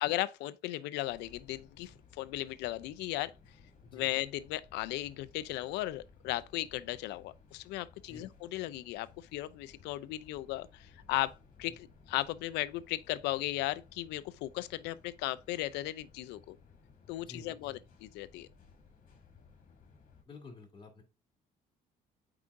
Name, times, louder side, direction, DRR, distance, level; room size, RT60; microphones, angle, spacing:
voice 1, 0.0-3.3 3.9-16.6 17.1-18.5, left 16 dB, 90° left, 0.5 m, -36 dB
sound 1, 1.1-20.2, left 5 dB, 55° left, 2.1 m, -59 dB
voice 2, 17.2-17.8 20.2-21.0, left 3 dB, 30° left, 2.4 m, -51 dB
8.4 x 4.9 x 2.6 m
cardioid pair, 110°, 17 cm